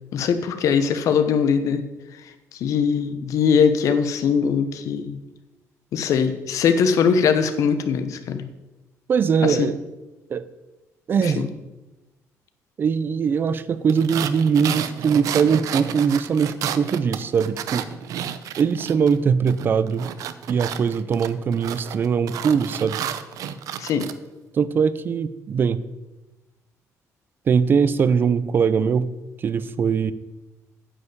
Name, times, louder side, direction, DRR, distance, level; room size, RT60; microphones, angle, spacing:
voice 1, 0.1-1.8 2.6-5.2 5.9-8.5 9.4-9.7 11.2-11.5 23.8-24.1, left 6 dB, 70° left, 9 dB, 1.0 m, -21 dB
voice 2, 9.1-9.8 10.3-10.4 11.1-11.4 12.8-17.8 18.6-20.1 20.5-23.0 24.5-25.8 27.5-29.1 29.4-30.1, right 6 dB, 35° right, 15 dB, 0.5 m, -21 dB
sound 1, 13.9-19.2 19.5-24.1, right 10 dB, 75° right, 0.6 m, -31 dB
9.9 x 5.5 x 8.0 m, 1.1 s
cardioid pair, 160°, 6 cm